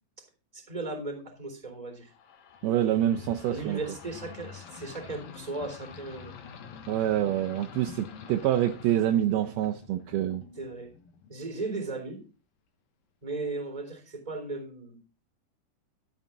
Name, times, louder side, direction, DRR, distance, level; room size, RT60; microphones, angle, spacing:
voice 1, 0.5-2.1 3.5-6.3 10.6-10.9 11.3-12.2 13.2-15.0, right 3 dB, 10° right, 3.5 m, -36 dB
sound 1, 2.1-11.4, left 7 dB, 65° left, 2.7 m, -46 dB
voice 2, 2.6-3.8 6.9-10.4, right 12 dB, 80° right, 2.5 m, -26 dB
13.0 x 7.1 x 3.8 m
omnidirectional pair, 4.7 m